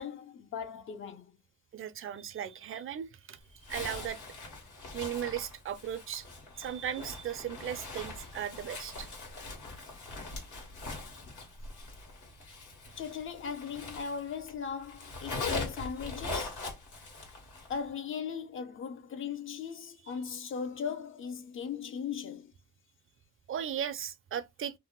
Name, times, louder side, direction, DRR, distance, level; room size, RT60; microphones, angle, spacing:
voice 1, 0.0-1.4 13.0-16.6 17.7-22.5, left 6 dB, 45° left, 0.6 m, -38 dB
voice 2, 1.7-3.4 3.7-4.2 4.9-6.3 6.6-9.1 23.5-24.7, right 9 dB, 45° right, 0.5 m, -37 dB
Zipper (clothing), 3.6-14.5 14.8-17.8, left 3 dB, 80° left, 1.6 m, -41 dB
2.7 x 2.1 x 3.6 m
cardioid pair, 90°, 30 cm